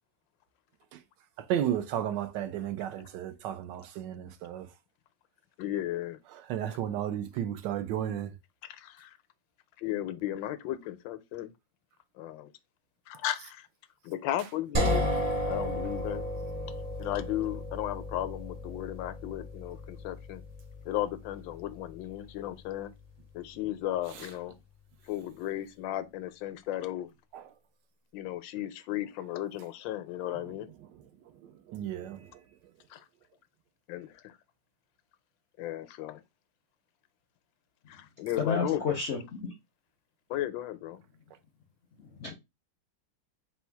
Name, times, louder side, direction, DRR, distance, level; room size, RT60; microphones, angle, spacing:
voice 1, 1.5-4.7 6.5-8.3 31.7-32.2, right 10 dB, 75° right, 1.2 m, -33 dB
voice 2, 5.6-6.2 6.7-6.8 8.6-9.2 9.8-11.5 12.2-12.5 13.1-13.7 14.0-15.1 15.5-16.3 17.0-20.4 20.8-22.9 23.3-24.5 25.1-27.1 28.1-30.7 32.9-33.0 33.9-34.4 35.6-36.2 37.9-38.8 40.3-41.0, left 13 dB, 85° left, 1.3 m, -35 dB
sound 1, 14.7-24.5, equal, 35° right, 0.6 m, -35 dB
voice 3, 38.4-39.2 42.2-42.3, left 5 dB, 65° left, 0.7 m, -29 dB
4.3 x 2.2 x 4.4 m
omnidirectional pair, 2.0 m